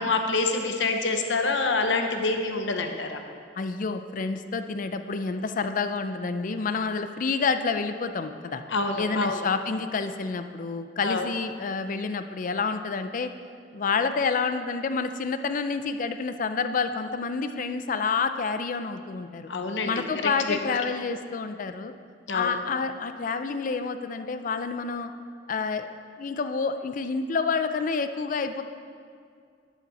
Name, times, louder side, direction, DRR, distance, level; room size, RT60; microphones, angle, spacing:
voice 1, 0.0-3.2 8.7-9.5 11.0-11.3 19.5-20.8 22.3-22.6, left 3 dB, 85° left, 5 dB, 0.9 m, -27 dB
voice 2, 3.6-8.6 9.0-13.3 13.7-19.5 19.8-21.9 22.3-25.1 25.5-25.9 26.2-28.6, left 4 dB, 45° left, 9 dB, 0.4 m, -28 dB
11.0 x 7.2 x 4.1 m, 2.2 s
head